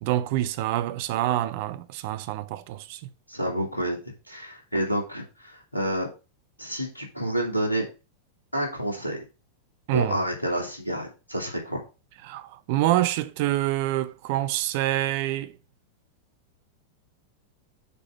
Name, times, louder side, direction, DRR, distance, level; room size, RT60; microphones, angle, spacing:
voice 1, 0.0-3.1 9.9-10.2 12.2-15.6, right 14 dB, 50° right, 0.7 m, -26 dB
voice 2, 3.3-4.0 4.3-6.1 6.6-7.9 8.5-9.2 9.9-11.8, equal, 85° left, 2.6 m, -29 dB
6.8 x 5.0 x 5.6 m
figure-of-eight pair, 90°, 0 cm